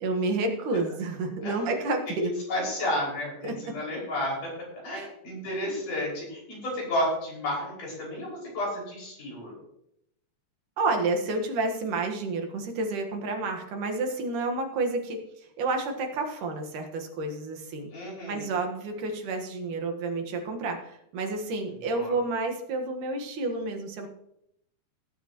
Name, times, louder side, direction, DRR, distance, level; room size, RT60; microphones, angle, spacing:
voice 1, 0.0-2.3 3.4-3.7 4.9-5.1 10.8-17.9 18.3-24.1, right 3 dB, 85° right, 3 dB, 3.2 m, -30 dB
voice 2, 1.4-1.8 2.2-9.5 17.9-18.5 21.9-22.1, left 1 dB, 90° left, -4 dB, 7.4 m, -32 dB
18.0 x 9.7 x 3.1 m, 0.76 s
omnidirectional pair, 3.5 m